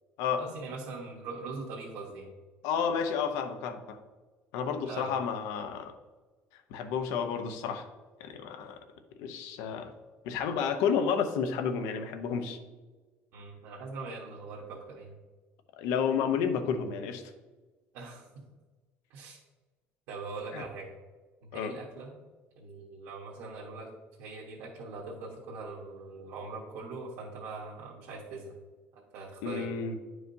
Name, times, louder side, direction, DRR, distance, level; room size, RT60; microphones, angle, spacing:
voice 1, 0.4-2.3 4.8-5.2 13.3-15.1 17.9-18.3 19.1-19.4 20.1-20.9 21.5-22.1 22.6-23.9 24.2-28.6 29.1-29.7, right 3 dB, 70° right, -5 dB, 1.3 m, -41 dB
voice 2, 2.6-4.0 4.5-5.9 6.7-7.9 8.2-8.8 9.2-9.9 10.2-12.6 15.8-17.2 20.5-20.6 21.5-21.7 29.4-29.9, left 6 dB, 90° left, 8 dB, 0.7 m, -31 dB
10.5 x 4.8 x 2.7 m, 1.3 s
cardioid pair, 175°, 5 cm